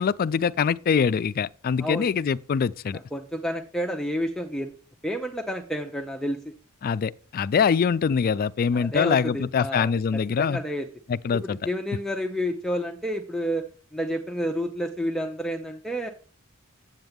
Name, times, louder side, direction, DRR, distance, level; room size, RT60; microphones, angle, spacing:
voice 1, 0.0-3.0 6.8-10.6 11.2-11.6, left 6 dB, 40° left, 0.3 m, -24 dB
voice 2, 1.8-2.1 2.9-4.8 5.0-6.5 8.7-10.9 11.3-16.1, equal, ahead, 0.6 m, -30 dB
9.3 x 7.9 x 3.5 m
head